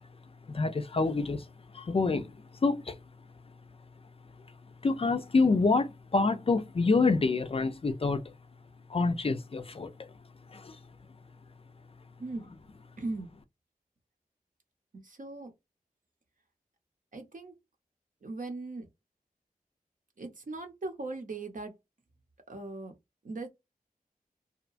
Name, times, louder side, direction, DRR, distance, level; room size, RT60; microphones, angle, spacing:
voice 1, 0.5-1.4 1.7-2.3 2.6-3.0 4.8-8.2 8.9-10.1 10.5-10.8, left 3 dB, 40° left, 0.4 m, -27 dB
voice 2, 12.2-12.5 13.0-13.3 14.9-15.5 17.1-17.5 18.2-18.9 20.2-21.7 22.5-22.9 23.2-23.5, right 2 dB, 60° right, 0.8 m, -39 dB
2.8 x 2.2 x 2.4 m
wide cardioid pair, 55°, 15 cm